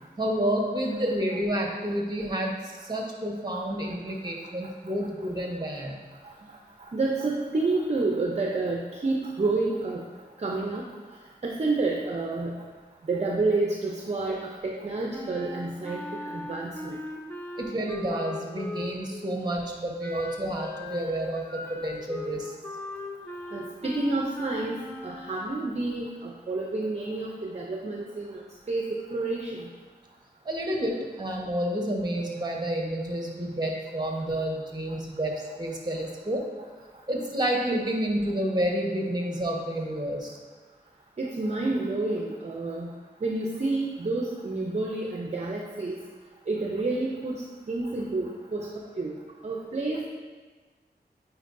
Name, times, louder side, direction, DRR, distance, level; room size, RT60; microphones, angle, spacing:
voice 1, 0.2-2.6 2.8-6.0 17.6-22.5 30.4-36.4 37.1-40.4, right 1 dB, 25° right, 0 dB, 1.1 m, -29 dB
voice 2, 6.9-10.0 10.4-10.8 11.4-12.5 13.1-17.0 23.5-24.8 25.0-28.4 28.7-29.7 41.2-42.9 43.2-46.0 46.5-48.7 49.0-49.1 49.4-50.1, right 3 dB, 40° right, -1 dB, 0.6 m, -29 dB
Wind instrument woodwind instrument, 15.1-19.3 20.0-25.4, left 2 dB, 10° left, 0.5 m, -38 dB
8.8 x 4.6 x 2.6 m, 1.4 s
wide cardioid pair, 80°, 17 cm